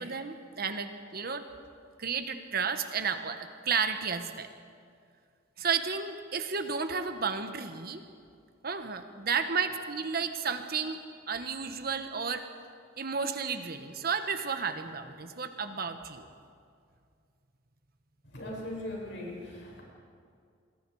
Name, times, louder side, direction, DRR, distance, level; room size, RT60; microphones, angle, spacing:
voice 1, 0.0-1.4 2.0-4.5 5.6-8.0 8.6-11.0 11.3-12.4 13.0-16.3, right 5 dB, 50° right, 8 dB, 1.4 m, -32 dB
voice 2, 18.2-19.8, left 1 dB, 65° left, -2 dB, 6.6 m, -39 dB
27.5 x 21.5 x 4.9 m, 2.3 s
head